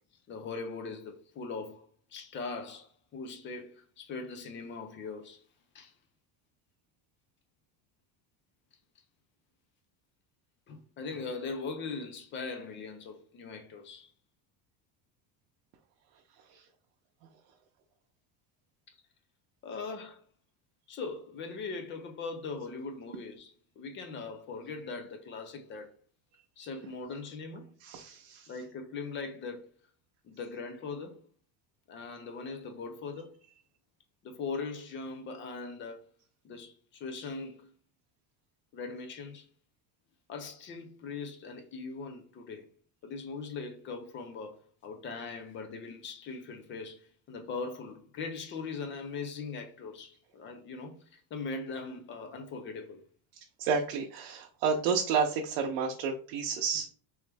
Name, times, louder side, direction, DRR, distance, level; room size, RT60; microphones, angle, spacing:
voice 1, 0.3-1.9 2.1-5.4 5.7-5.9 10.7-14.1 18.9-19.0 19.6-20.2 20.9-25.9 26.6-27.7 28.5-29.7 30.2-31.2 31.9-33.3 34.2-36.1 36.4-37.7 38.7-39.5 40.3-42.7 43.0-53.0, left 4 dB, 30° left, 0.4 m, -40 dB
voice 2, 27.8-28.5 53.3-56.9, right 5 dB, 80° right, 0.7 m, -31 dB
3.2 x 3.1 x 3.3 m
cardioid pair, 160°, 45 cm